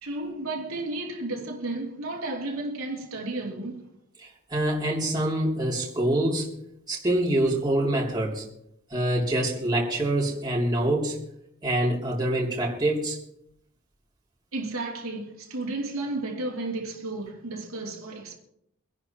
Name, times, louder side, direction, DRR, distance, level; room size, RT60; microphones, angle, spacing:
voice 1, 0.0-3.9 14.5-18.4, right 2 dB, 75° right, 2.8 m, -33 dB
voice 2, 4.2-6.6 6.9-8.4 8.9-11.2 11.6-13.2, right 1 dB, 20° right, 2.9 m, -25 dB
25.5 x 11.0 x 3.0 m
head